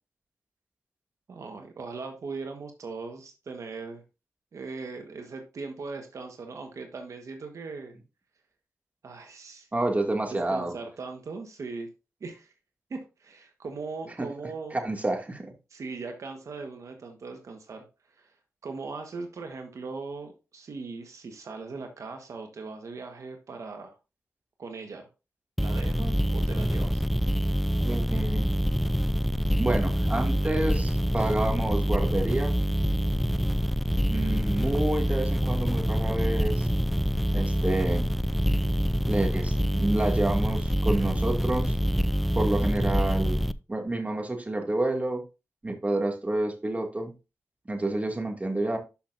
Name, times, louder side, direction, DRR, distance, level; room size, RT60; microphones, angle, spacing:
voice 1, 1.3-4.0 4.5-8.0 9.0-9.7 10.3-11.9 12.2-12.5 12.9-14.8 15.7-18.4 18.6-24.0 24.6-25.1 25.6-27.0, right 4 dB, 75° right, 4 dB, 1.3 m, -39 dB
voice 2, 9.7-10.7 14.2-14.3 14.8-15.5 27.8-28.5 29.6-32.5 34.1-36.7 37.3-38.1 39.1-41.8 42.3-43.4 43.7-45.2 45.6-47.1 47.7-48.8, right 2 dB, 25° right, 3 dB, 2.2 m, -29 dB
sound 1, 25.6-43.5, equal, ahead, 0.5 m, -26 dB
11.5 x 5.9 x 2.6 m, 0.29 s
cardioid pair, 60°, 5 cm